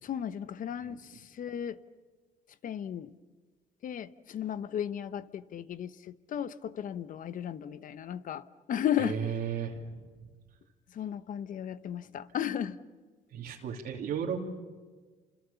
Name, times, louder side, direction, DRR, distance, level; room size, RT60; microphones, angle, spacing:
voice 1, 0.0-1.8 2.6-3.1 3.8-9.2 10.9-12.8, left 9 dB, 50° left, 13 dB, 1.0 m, -35 dB
voice 2, 9.0-10.0 13.3-14.4, right 7 dB, 65° right, -1 dB, 3.0 m, -34 dB
29.5 x 27.0 x 7.1 m, 1.4 s
cardioid pair, 110°, 17 cm